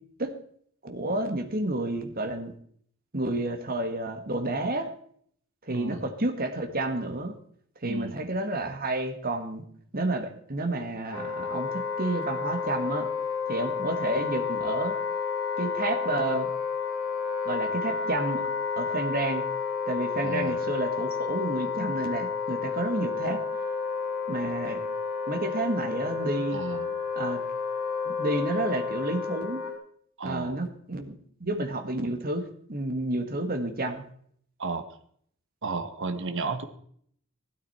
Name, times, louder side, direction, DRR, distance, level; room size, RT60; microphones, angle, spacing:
voice 1, 0.8-2.5 3.1-4.9 5.6-7.4 7.8-9.6 9.9-13.1 13.5-15.0 15.6-16.5 17.5-18.5 18.8-19.5 19.9-23.4 24.3-24.8 25.3-26.6 27.2-27.4 28.1-29.7 30.2-31.2 31.4-34.0, right 2 dB, 40° right, 6 dB, 1.9 m, -30 dB
voice 2, 5.7-6.0 7.8-8.1 20.2-20.6 26.5-26.9 30.2-30.6 34.6-34.8 35.6-36.7, right 4 dB, 60° right, 8 dB, 1.3 m, -33 dB
Wind instrument woodwind instrument, 11.1-29.7, left 5 dB, 75° left, 6.7 m, -31 dB
16.0 x 13.0 x 4.3 m, 0.62 s
head